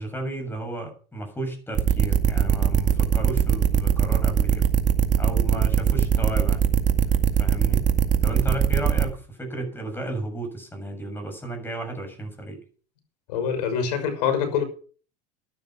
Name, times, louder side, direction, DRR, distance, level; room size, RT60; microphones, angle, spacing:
voice 1, 0.0-4.7 5.2-6.6 7.4-7.9 8.2-12.6, right 1 dB, 10° left, 5 dB, 7.3 m, -33 dB
sound 1, 1.7-9.0, right 8 dB, 40° right, 2.1 m, -20 dB
voice 2, 13.3-14.6, left 7 dB, 80° left, 9 dB, 6.0 m, -25 dB
12.5 x 12.5 x 6.0 m, 0.41 s
supercardioid pair, 110°, 21 cm